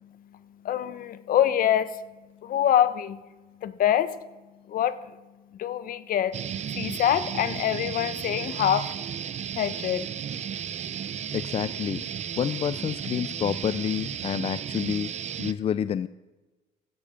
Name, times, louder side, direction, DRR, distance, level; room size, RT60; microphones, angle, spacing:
voice 1, 0.0-2.1 2.4-3.2 3.6-4.2 4.7-5.2 5.5-6.4 6.7-8.9 9.6-10.1, left 10 dB, 55° left, 15 dB, 0.9 m, -25 dB
sound 1, 6.3-15.5, right 8 dB, 40° right, 0.7 m, -34 dB
voice 2, 11.3-12.0 12.4-15.1 15.4-16.1, left 8 dB, 35° left, 15 dB, 0.4 m, -28 dB
15.5 x 11.5 x 5.1 m, 1.2 s
cardioid pair, 110°, 17 cm